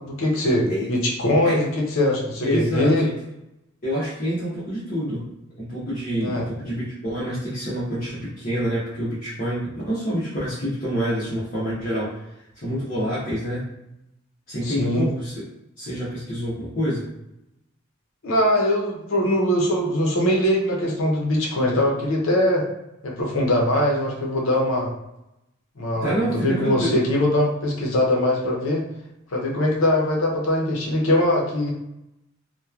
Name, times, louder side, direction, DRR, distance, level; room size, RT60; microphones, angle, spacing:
voice 1, 0.0-3.1 6.2-6.4 14.6-15.1 18.2-22.7 23.0-24.9 25.8-28.8 29.3-31.7, left 1 dB, 80° left, -2 dB, 0.7 m, -22 dB
voice 2, 2.4-3.1 3.8-5.3 5.6-12.2 12.6-13.6 14.5-15.4 15.8-17.1 26.0-27.0, equal, 45° left, -10 dB, 0.8 m, -27 dB
2.9 x 2.2 x 2.3 m, 0.88 s
head